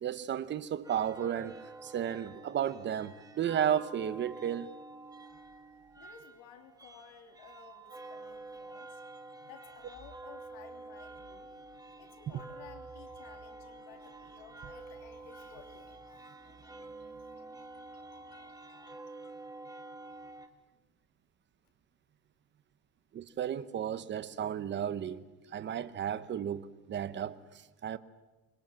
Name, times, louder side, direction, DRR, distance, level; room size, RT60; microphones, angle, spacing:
voice 1, 0.0-4.8 12.3-12.4 23.1-28.0, right 9 dB, 25° right, 0.9 m, -34 dB
sound 1, 0.8-20.5, right 2 dB, 10° right, 1.5 m, -49 dB
voice 2, 6.0-9.0 9.5-11.5 12.0-19.4, left 8 dB, 80° left, 3.0 m, -56 dB
26.5 x 22.0 x 7.6 m
cardioid pair, 165°, 44 cm